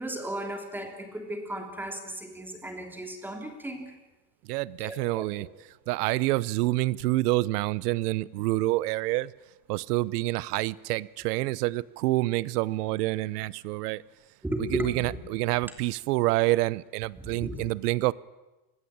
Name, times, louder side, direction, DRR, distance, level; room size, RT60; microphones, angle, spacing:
voice 1, 0.0-4.0 4.8-5.5 14.4-15.2 15.6-15.7 17.2-17.7, right 1 dB, 5° right, 3.1 m, -35 dB
voice 2, 4.4-5.5 5.9-9.3 9.7-14.0 14.6-18.1, right 19 dB, 80° right, 1.0 m, -27 dB
28.5 x 21.0 x 8.8 m
cardioid pair, 170°, 46 cm